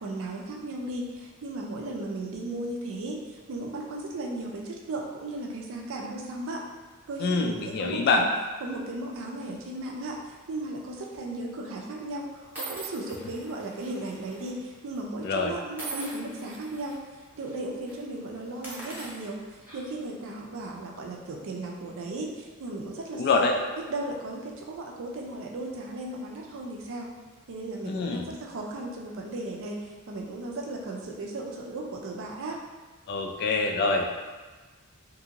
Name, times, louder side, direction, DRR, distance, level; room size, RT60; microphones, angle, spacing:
voice 1, 0.0-6.6 7.1-8.3 8.6-17.0 17.4-19.4 19.7-23.4 23.9-27.1 27.5-32.6, right 2 dB, 60° right, 0 dB, 0.4 m, -36 dB
voice 2, 7.2-8.2 15.2-15.6 23.1-23.6 27.9-28.3 33.1-34.1, left 3 dB, 45° left, 2 dB, 0.3 m, -25 dB
sound 1, 10.9-11.2 11.9-12.0 12.6-14.5 14.8-15.0 15.8-16.9 17.4-17.5 17.8-18.0 18.5-20.1, right 3 dB, 10° right, 0.6 m, -42 dB
2.7 x 2.5 x 2.8 m, 1.3 s
head